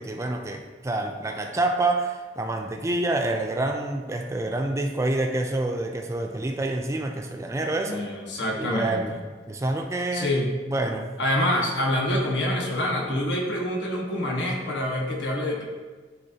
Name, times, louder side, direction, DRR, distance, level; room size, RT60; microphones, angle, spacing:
voice 1, 0.0-8.0 8.6-9.2 9.5-10.3 10.7-11.2, right 2 dB, 15° right, 4 dB, 0.4 m, -27 dB
voice 2, 7.9-9.0 10.1-10.5 11.2-15.6, left 1 dB, 85° left, -1 dB, 1.2 m, -26 dB
9.8 x 3.6 x 2.7 m, 1.4 s
head